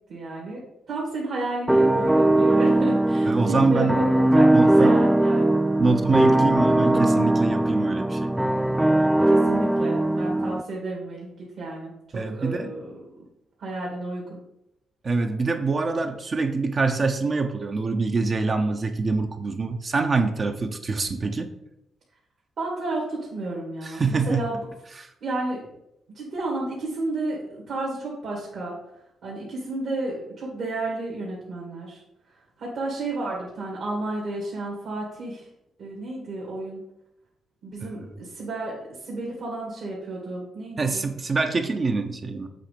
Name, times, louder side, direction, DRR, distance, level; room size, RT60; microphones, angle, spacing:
voice 1, 0.1-0.6 0.9-5.6 9.3-13.2 13.6-14.4 22.6-24.6 25.2-25.7 26.1-28.8 29.2-32.0 32.6-35.5 35.8-36.8 37.6-41.1, right 2 dB, 70° right, -4 dB, 2.0 m, -32 dB
sound 1, 1.7-10.6, right 1 dB, 5° right, 0.3 m, -20 dB
voice 2, 3.3-4.0 4.5-5.0 5.8-8.3 12.1-12.7 15.0-21.5 23.8-24.5 25.0-25.1 37.8-37.9 40.8-42.5, right 4 dB, 45° right, 5 dB, 0.7 m, -25 dB
7.7 x 2.8 x 5.1 m, 0.84 s
cardioid pair, 65°, 0 cm